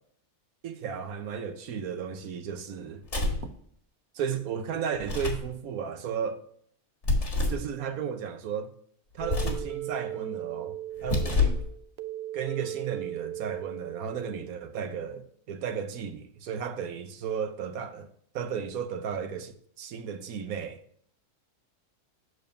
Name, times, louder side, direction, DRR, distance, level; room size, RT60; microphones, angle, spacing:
voice 1, 0.6-3.0 4.1-6.4 7.5-8.7 9.1-11.6 12.3-18.1 18.3-20.8, right 7 dB, 75° right, 1.2 m, -34 dB
sound 1, 3.0-3.5 5.0-5.5 7.0-7.7 9.2-9.7 11.0-11.7, left 3 dB, 50° left, 2.0 m, -27 dB
sound 2, 9.2-14.8, right 12 dB, 60° right, 0.8 m, -38 dB
8.0 x 6.8 x 2.6 m
omnidirectional pair, 1.5 m